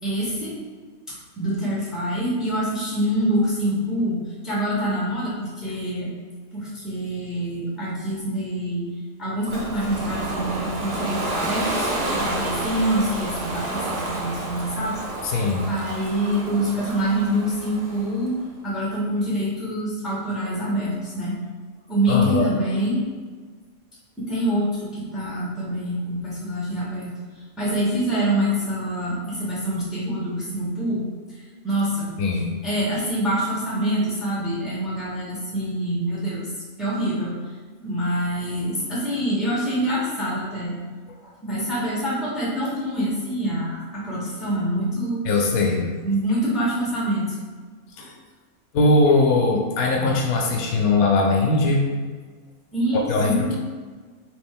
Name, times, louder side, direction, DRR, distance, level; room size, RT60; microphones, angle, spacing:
voice 1, 0.0-0.5 1.4-6.1 6.5-8.9 9.2-15.0 15.7-21.3 21.9-23.0 24.2-27.1 27.6-32.1 32.6-36.5 36.8-37.3 37.8-40.8 41.2-45.2 46.0-47.4 48.0-48.1 52.7-53.6, right 1 dB, ahead, -7 dB, 0.9 m, -25 dB
Ocean, 9.5-18.3, right 2 dB, 45° right, 0.6 m, -30 dB
voice 2, 15.2-15.7 22.1-22.5 32.2-32.6 45.2-45.9 48.0-48.1 48.7-51.8 52.9-53.6, left 2 dB, 75° left, 1 dB, 1.0 m, -20 dB
3.1 x 3.0 x 3.6 m, 1.5 s
omnidirectional pair, 1.5 m